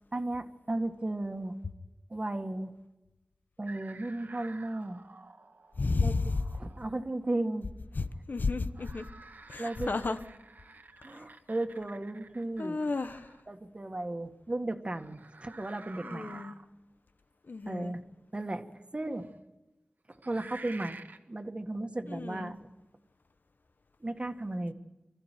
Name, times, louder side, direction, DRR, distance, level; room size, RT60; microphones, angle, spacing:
voice 1, 0.1-1.6 2.1-2.7 3.6-5.0 6.0-6.1 6.6-7.7 9.6-9.9 11.0-12.8 13.5-16.4 17.7-18.0 18.3-18.7 18.9-19.3 20.3-21.0 21.3-22.6 24.0-24.7, right 2 dB, 35° right, 6 dB, 1.9 m, -35 dB
sound 1, 3.7-6.9 8.7-13.4 14.9-16.6 17.9-18.0 19.1-19.3 20.1-21.2, right 3 dB, 80° right, 1.6 m, -50 dB
voice 2, 5.8-6.4 8.0-9.1 9.5-10.2 11.1-11.3 12.6-13.4 16.0-16.6 17.5-17.9 22.1-22.5, left 3 dB, 80° left, 10 dB, 1.1 m, -32 dB
26.0 x 14.5 x 9.2 m, 1.0 s
wide cardioid pair, 70°, 3 cm